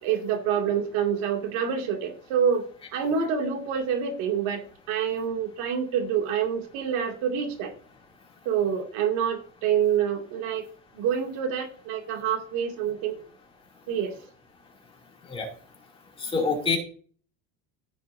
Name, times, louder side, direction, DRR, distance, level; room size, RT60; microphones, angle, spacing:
voice 1, 0.0-2.6 2.9-7.7 8.5-10.7 10.9-13.2 13.9-14.1, right 8 dB, 60° right, 3 dB, 2.4 m, -27 dB
voice 2, 16.2-16.8, left 4 dB, 15° left, 0 dB, 2.6 m, -25 dB
15.0 x 6.6 x 2.7 m, 0.44 s
cardioid pair, 170°, 33 cm